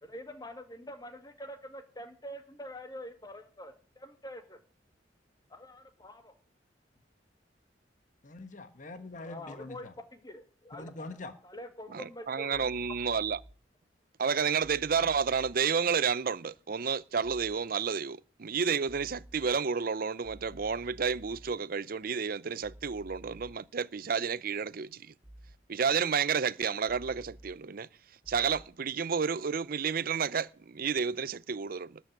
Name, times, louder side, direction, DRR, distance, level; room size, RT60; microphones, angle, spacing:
voice 1, 0.0-4.6 5.5-6.3 9.2-11.2 11.4-12.7 14.3-14.4, left 1 dB, 20° left, 2.0 m, -45 dB
voice 2, 8.2-9.9 10.8-11.3, left 2 dB, 45° left, 1.3 m, -43 dB
voice 3, 11.9-13.4 14.2-25.1 25.7-27.9 28.3-32.0, right 6 dB, 55° right, 0.6 m, -31 dB
sound 1, 12.5-13.5 14.6-15.5 17.2-17.5 18.9-19.5 20.2-21.5 22.6-23.5 25.2-25.5 26.9-27.5 28.2-28.6, right 1 dB, 10° right, 3.0 m, -51 dB
13.0 x 6.2 x 9.5 m
head